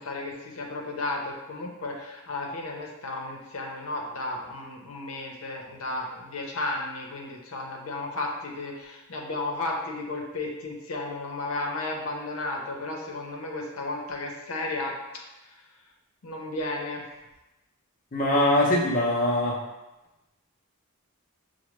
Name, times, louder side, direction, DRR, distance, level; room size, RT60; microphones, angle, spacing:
voice 1, 0.0-15.0 15.4-15.6 16.2-17.1, left 2 dB, 80° left, 0 dB, 0.7 m, -33 dB
voice 2, 18.1-19.6, left 1 dB, 40° left, -3 dB, 0.6 m, -22 dB
6.0 x 2.1 x 3.1 m, 1.0 s
head